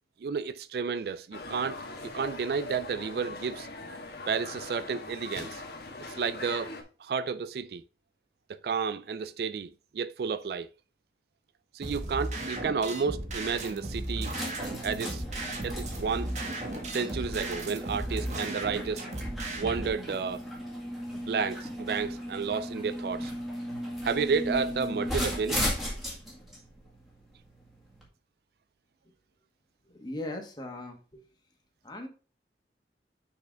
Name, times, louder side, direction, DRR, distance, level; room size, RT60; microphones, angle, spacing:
voice 1, 0.2-3.7 4.3-5.6 6.1-6.7 7.0-7.8 8.5-10.7 11.7-14.3 14.8-15.2 15.6-16.3 16.9-19.1 19.6-20.4 21.1-23.3 24.0-25.7, right 5 dB, 60° right, 0.3 m, -31 dB
sound 1, 1.3-6.8, left 2 dB, 60° left, 1.4 m, -41 dB
sound 2, 11.8-19.9, right 1 dB, 40° right, 1.5 m, -36 dB
sound 3, 12.4-28.1, equal, ahead, 1.8 m, -37 dB
voice 2, 29.8-31.3 31.8-32.1, left 1 dB, 25° left, 1.5 m, -39 dB
6.4 x 5.5 x 3.4 m
head